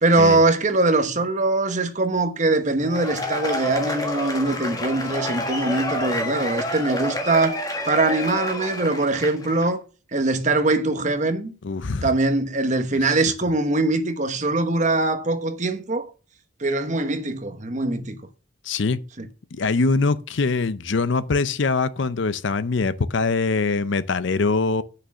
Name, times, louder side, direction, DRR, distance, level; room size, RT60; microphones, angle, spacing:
voice 1, 0.0-9.8 10.1-11.5 12.0-16.1 16.6-18.2 19.2-19.3, right 2 dB, 35° right, 1.0 m, -22 dB
Cheering / Applause / Crowd, 2.8-9.6, left 1 dB, 20° left, 1.6 m, -29 dB
voice 2, 11.6-12.1 18.6-19.0 19.5-24.8, left 4 dB, 65° left, 0.6 m, -23 dB
8.6 x 6.4 x 6.1 m
head